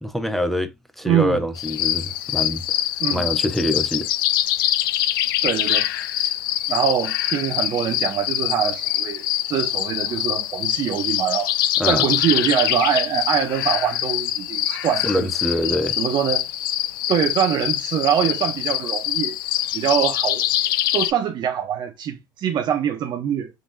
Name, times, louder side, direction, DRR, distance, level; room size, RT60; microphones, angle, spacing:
voice 1, 0.0-2.8 3.1-4.1 11.8-12.1 15.0-16.0, equal, ahead, 0.6 m, -25 dB
voice 2, 1.0-1.4 3.0-3.3 5.4-5.9 6.2-6.4 6.7-11.5 11.8-15.3 16.0-16.4 17.1-19.4 19.7-20.5 20.9-23.5, right 9 dB, 45° right, 0.7 m, -23 dB
sound 1, 1.5-21.1, left 13 dB, 80° left, 0.4 m, -24 dB
3.7 x 2.8 x 2.5 m
hypercardioid pair, 80°, 11 cm